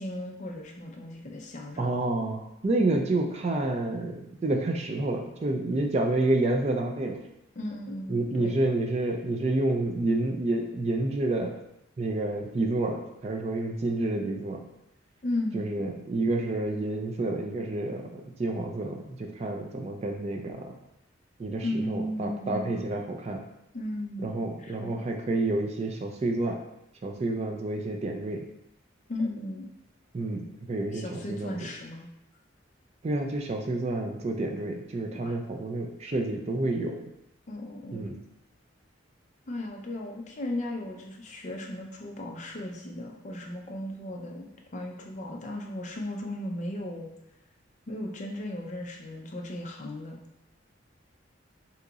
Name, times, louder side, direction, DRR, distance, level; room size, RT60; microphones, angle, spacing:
voice 1, 0.0-1.9 7.6-8.5 15.2-15.7 21.6-22.9 23.7-25.0 29.1-29.7 30.9-32.1 35.1-35.4 37.5-38.1 39.5-47.1 47.9-50.2, left 1 dB, 40° left, 1 dB, 0.4 m, -36 dB
voice 2, 1.8-7.2 8.1-11.6 12.0-14.6 15.5-20.7 21.4-23.4 24.2-26.6 27.0-28.4 30.1-31.6 33.0-37.0 37.9-38.2, right 2 dB, 35° right, 2 dB, 0.3 m, -29 dB
2.9 x 2.3 x 3.8 m, 0.81 s
head